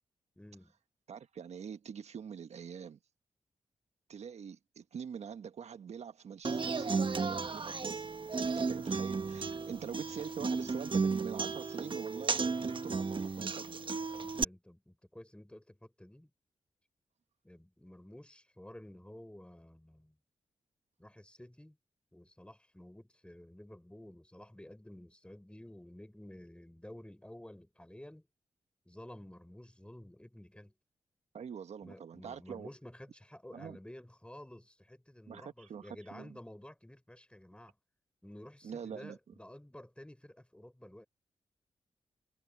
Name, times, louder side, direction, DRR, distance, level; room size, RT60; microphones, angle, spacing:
voice 1, 0.4-0.7 14.2-16.3 17.4-20.2 21.0-21.8 22.1-28.3 28.9-30.7 31.8-37.7 38.2-41.1, left 1 dB, 10° left, 4.6 m, -52 dB
voice 2, 1.1-3.0 4.1-8.1 8.4-13.8 31.3-32.7 33.5-33.8 35.3-36.4 38.6-39.2, right 7 dB, 70° right, 1.4 m, -44 dB
Human voice / Acoustic guitar, 6.4-14.4, right 4 dB, 45° right, 1.3 m, -34 dB
supercardioid pair, 40°, 12 cm